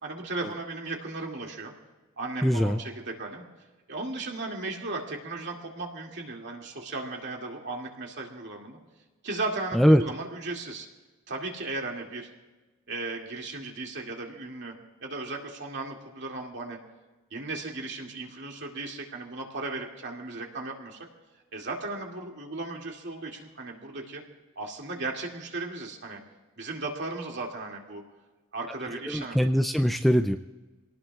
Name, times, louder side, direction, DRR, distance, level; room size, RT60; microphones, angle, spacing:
voice 1, 0.0-1.7 2.2-3.4 3.9-8.8 9.2-10.9 11.3-12.3 12.9-14.7 15.0-16.8 17.3-21.0 21.5-24.2 24.6-26.2 26.6-28.0 28.5-29.4, right 3 dB, 55° right, 0 dB, 2.4 m, -36 dB
voice 2, 2.4-2.8 9.7-10.0 29.1-30.4, equal, ahead, 6 dB, 0.4 m, -22 dB
26.5 x 18.5 x 2.4 m, 1.2 s
head